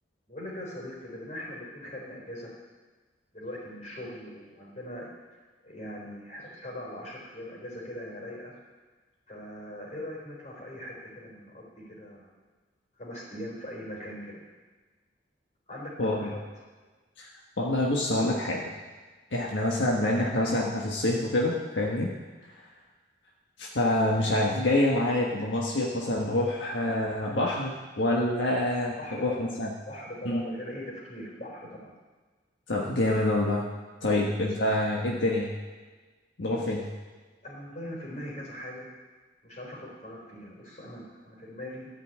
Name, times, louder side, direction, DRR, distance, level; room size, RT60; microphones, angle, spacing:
voice 1, 0.3-2.6 3.3-5.1 5.6-8.5 9.3-12.3 13.0-14.4 15.7-16.4 29.0-29.5 29.8-31.9 36.5-36.7 37.4-38.9 39.4-41.9, left 1 dB, 40° left, -3 dB, 3.9 m, -40 dB
voice 2, 16.0-16.3 17.2-17.3 17.6-18.6 19.3-22.1 23.6-29.7 30.2-30.4 32.7-33.6 34.0-35.5 36.4-36.8, left 1 dB, 80° left, -3 dB, 1.5 m, -26 dB
13.5 x 5.7 x 8.6 m, 1.4 s
head